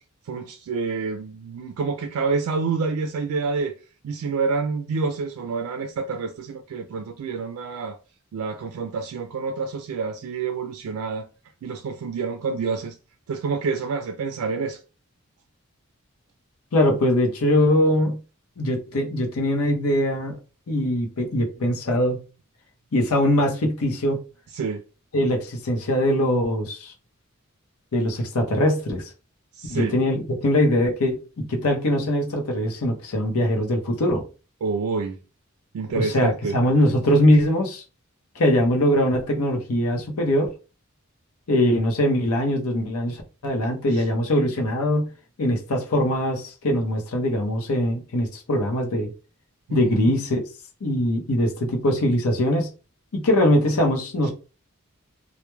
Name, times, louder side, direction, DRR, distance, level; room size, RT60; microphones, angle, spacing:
voice 1, 0.3-3.7 4.0-8.0 8.3-11.3 11.6-13.0 13.3-14.8 24.5-24.8 29.6-30.0 34.6-35.2 35.7-36.6 43.9-44.1 49.7-49.9 54.2-54.3, right 4 dB, 85° right, 0.3 m, -28 dB
voice 2, 16.7-18.2 18.6-20.4 20.7-22.2 22.9-24.2 25.1-26.9 27.9-29.0 29.7-34.2 35.9-37.8 38.4-40.5 41.5-45.1 45.4-49.1 49.7-50.4 50.8-52.7 53.1-54.3, left 1 dB, 85° left, 0.7 m, -22 dB
2.2 x 2.1 x 3.0 m
head